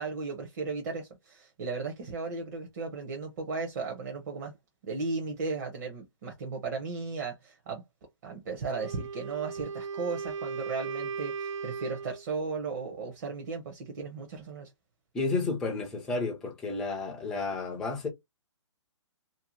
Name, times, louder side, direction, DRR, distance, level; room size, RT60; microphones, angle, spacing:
voice 1, 0.0-4.6 4.8-7.8 8.2-14.7, right 4 dB, 35° right, 0.7 m, -35 dB
Wind instrument woodwind instrument, 8.7-12.2, right 5 dB, 75° right, 0.9 m, -37 dB
voice 2, 15.1-18.1, left 3 dB, 5° left, 0.3 m, -31 dB
2.6 x 2.1 x 2.8 m
hypercardioid pair, 160°, 16 cm